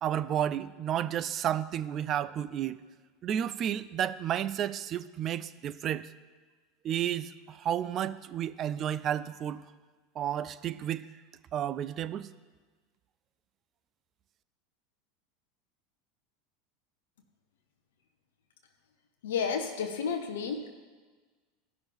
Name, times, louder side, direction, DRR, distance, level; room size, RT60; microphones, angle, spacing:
voice 1, 0.0-2.8 3.2-6.1 6.8-9.6 10.2-11.1 11.5-12.3, right 10 dB, 40° right, 14 dB, 0.4 m, -32 dB
voice 2, 19.2-20.7, left 6 dB, 75° left, 5 dB, 0.7 m, -31 dB
15.0 x 6.0 x 3.5 m, 1.4 s
hypercardioid pair, 85°, 0 cm